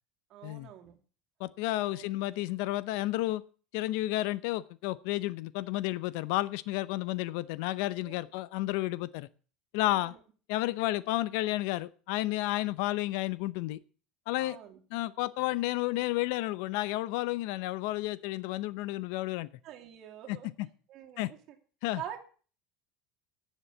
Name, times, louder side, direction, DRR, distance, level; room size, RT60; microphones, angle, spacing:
voice 1, 0.3-1.0 1.7-2.1 2.4-2.5 8.0-8.3 9.8-10.2 14.3-14.8 19.6-20.5 20.9-21.4 21.9-22.2, right 11 dB, 45° right, 2.4 m, -45 dB
voice 2, 1.4-3.4 3.7-9.3 9.7-10.1 10.5-13.8 14.3-14.6 14.9-19.5 20.3-20.4 21.2-21.3 21.8-22.0, left 17 dB, 70° left, 0.6 m, -31 dB
10.0 x 7.4 x 7.9 m
cardioid pair, 150°, 0 cm